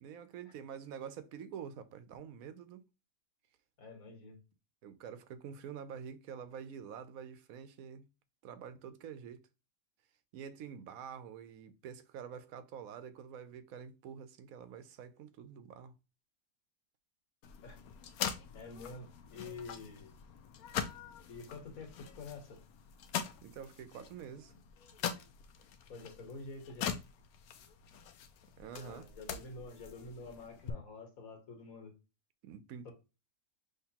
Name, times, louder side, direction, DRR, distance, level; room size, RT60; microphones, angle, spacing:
voice 1, 0.0-2.8 4.8-8.0 8.4-9.5 10.3-16.0 23.4-24.5 28.6-29.1 32.4-32.9, right 7 dB, 75° right, 1.0 m, -47 dB
voice 2, 3.8-4.4 17.6-17.8 18.5-20.1 21.3-22.6 24.5-24.6 25.9-26.9 28.7-31.9 32.9-33.0, left 3 dB, 70° left, 1.8 m, -48 dB
sound 1, 17.4-30.7, left 8 dB, 90° left, 1.1 m, -43 dB
5.8 x 3.1 x 2.9 m
omnidirectional pair, 1.5 m